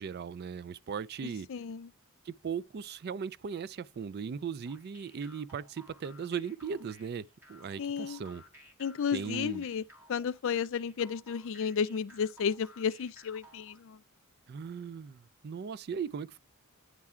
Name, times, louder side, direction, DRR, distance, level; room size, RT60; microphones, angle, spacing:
voice 1, 0.0-1.5 2.2-8.4 9.1-9.6 14.5-16.4, right 6 dB, 50° right, 0.3 m, -38 dB
voice 2, 1.5-1.9 7.8-8.2 8.8-9.8 10.1-14.0, left 6 dB, 65° left, 0.4 m, -32 dB
sound 1, 4.7-13.8, equal, 10° right, 2.1 m, -57 dB
9.6 x 3.6 x 4.3 m
head